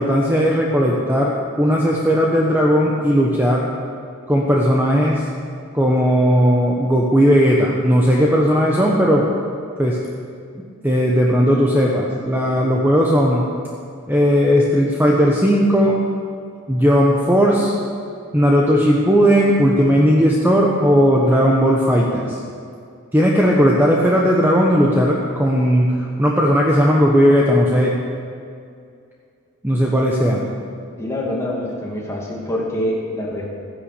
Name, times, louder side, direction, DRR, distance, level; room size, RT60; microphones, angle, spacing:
voice 1, 0.0-1.3 1.6-3.7 4.3-5.2 5.7-9.3 9.8-10.0 10.8-13.4 14.1-16.0 16.7-17.7 18.3-22.4 23.1-27.9 29.6-30.4, equal, 10° right, -2 dB, 1.1 m, -16 dB
voice 2, 31.0-33.5, left 1 dB, 15° left, -3 dB, 2.6 m, -25 dB
14.5 x 10.5 x 6.8 m, 2.3 s
head